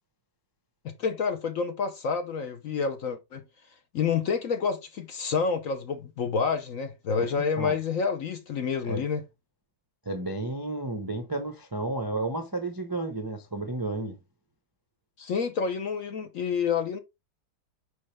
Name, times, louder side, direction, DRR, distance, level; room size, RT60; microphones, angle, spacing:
voice 1, 0.8-3.4 3.9-9.2 15.2-17.0, left 5 dB, 60° left, 0.9 m, -28 dB
voice 2, 10.0-14.2, right 2 dB, 30° right, 0.4 m, -32 dB
6.5 x 5.6 x 3.3 m
omnidirectional pair, 2.2 m